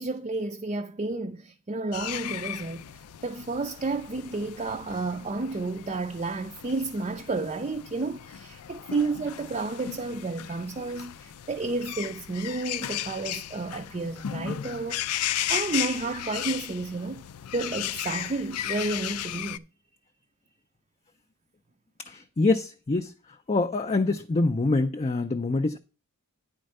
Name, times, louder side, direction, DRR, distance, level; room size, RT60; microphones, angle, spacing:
voice 1, 0.0-2.9 3.2-15.0 15.5-17.2 17.5-19.6, right 3 dB, 30° right, 0.5 m, -31 dB
sound 1, 1.9-19.6, left 11 dB, 85° left, 0.4 m, -36 dB
voice 2, 22.1-23.1 23.5-25.8, left 3 dB, 30° left, 0.4 m, -25 dB
9.6 x 4.4 x 6.4 m
head